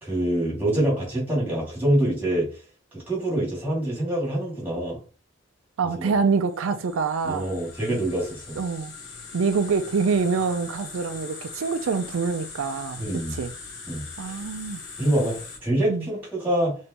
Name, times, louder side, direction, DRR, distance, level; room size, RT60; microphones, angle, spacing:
voice 1, 0.0-2.5 2.9-5.0 5.9-6.1 7.2-8.6 13.0-13.4 13.9-14.4 15.0-16.8, right 1 dB, 10° right, 2.1 m, -25 dB
voice 2, 5.8-7.5 8.6-8.9 9.3-13.0 13.3-13.5 14.2-14.8 15.9-16.1, right 5 dB, 75° right, 0.4 m, -25 dB
sound 1, 6.5-15.6, left 4 dB, 55° left, 1.0 m, -41 dB
5.2 x 3.1 x 2.9 m
head